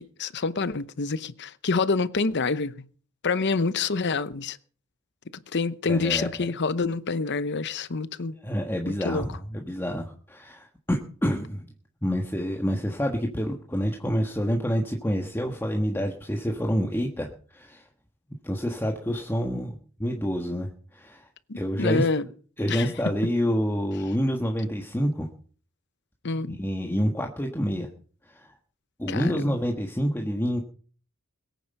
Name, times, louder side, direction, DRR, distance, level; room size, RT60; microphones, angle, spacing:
voice 1, 0.0-2.9 3.2-4.6 5.5-8.4 8.9-9.2 21.5-22.3 22.7-22.9 26.2-26.6 29.1-29.6, left 4 dB, 55° left, 0.8 m, -27 dB
voice 2, 5.9-6.3 8.4-11.7 12.0-17.3 17.5-17.8 18.4-19.7 20.0-21.2 21.5-22.0 22.6-25.3 26.6-27.9 28.3-28.5 29.0-30.6, equal, 10° left, 1.5 m, -27 dB
22.0 x 9.2 x 5.5 m
head